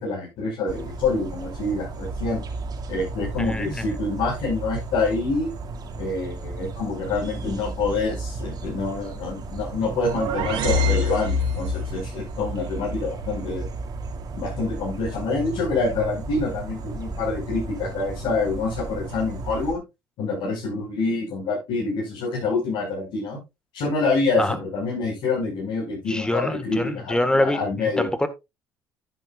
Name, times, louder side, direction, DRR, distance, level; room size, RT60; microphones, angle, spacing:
voice 1, 0.0-2.4 2.9-5.5 6.0-13.6 14.3-19.8 20.2-23.4 23.7-28.1, left 3 dB, 75° left, 5.6 m, -26 dB
sound 1, 0.7-19.7, right 3 dB, 50° right, 2.2 m, -34 dB
voice 2, 3.4-3.8 24.4-24.6 26.1-28.3, left 1 dB, 10° left, 1.6 m, -25 dB
sound 2, 9.7-12.0, left 2 dB, 75° right, 2.7 m, -25 dB
10.0 x 10.0 x 2.4 m
supercardioid pair, 80°, 9 cm